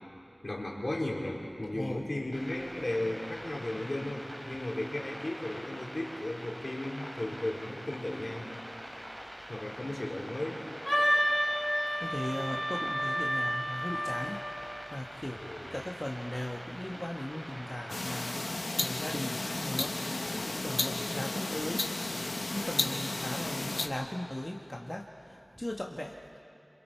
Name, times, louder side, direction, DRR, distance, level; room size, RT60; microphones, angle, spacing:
voice 1, 0.4-8.5 9.5-10.6 15.4-15.6, left 1 dB, 65° left, -3 dB, 4.3 m, -35 dB
voice 2, 1.7-2.0 12.0-14.4 14.6-15.4 15.7-20.1 20.4-21.8 22.5-26.4, left 1 dB, 30° left, 0 dB, 1.4 m, -38 dB
sound 1, 2.3-18.3, equal, 25° right, 4.0 m, -45 dB
Wind instrument woodwind instrument, 10.9-14.7, equal, 5° left, 3.4 m, -30 dB
sound 2, 17.9-23.9, left 2 dB, 85° left, 1.2 m, -33 dB
28.0 x 26.5 x 4.5 m, 2.8 s
wide cardioid pair, 45°, 0 cm